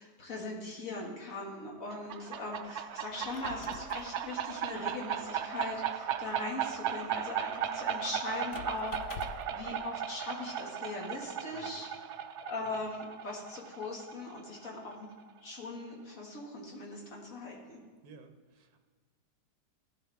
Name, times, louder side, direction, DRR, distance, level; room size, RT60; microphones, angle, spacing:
voice 1, 0.0-11.9 12.4-15.1 15.4-17.8, left 2 dB, 50° left, -2 dB, 2.3 m, -40 dB
sound 1, 1.9-15.3, right 9 dB, 80° right, 0.6 m, -37 dB
Squeak, 3.0-9.7, left 6 dB, 85° left, 1.4 m, -50 dB
voice 2, 11.5-11.9 18.0-18.8, right 4 dB, 65° right, 6 dB, 1.4 m, -54 dB
16.5 x 10.0 x 3.5 m, 1.5 s
omnidirectional pair, 1.8 m